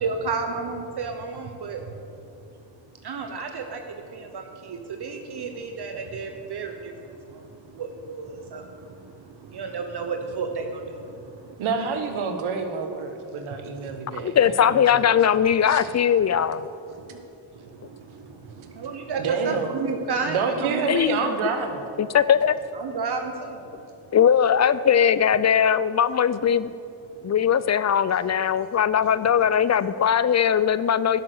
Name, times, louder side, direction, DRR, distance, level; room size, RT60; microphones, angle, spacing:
voice 1, 0.0-2.0 3.0-11.6 13.5-14.3 16.9-17.3 17.5-20.9 22.7-23.8 27.1-27.3, right 4 dB, 55° right, 5 dB, 1.0 m, -33 dB
voice 2, 11.6-15.0 15.7-15.8 19.1-19.7 20.2-21.8, right 5 dB, 80° right, 6 dB, 1.2 m, -28 dB
voice 3, 14.2-16.6 20.9-21.2 22.0-22.5 24.1-26.7 27.2-31.2, left 8 dB, 35° left, 15 dB, 0.4 m, -20 dB
10.5 x 6.8 x 6.6 m, 2.7 s
supercardioid pair, 50°, 48 cm